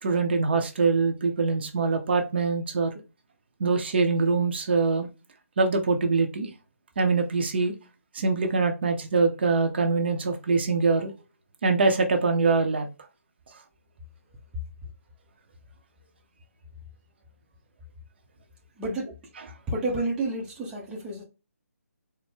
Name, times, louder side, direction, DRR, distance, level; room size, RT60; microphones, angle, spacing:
voice 1, 0.0-2.9 3.6-5.1 5.6-6.5 7.0-7.7 8.1-11.1 11.6-12.9 19.4-19.5, right 4 dB, 40° right, 0.7 m, -24 dB
voice 2, 18.8-19.1 19.7-21.2, right 2 dB, 10° right, 0.7 m, -30 dB
4.2 x 2.1 x 3.5 m
figure-of-eight pair, 150°, 8 cm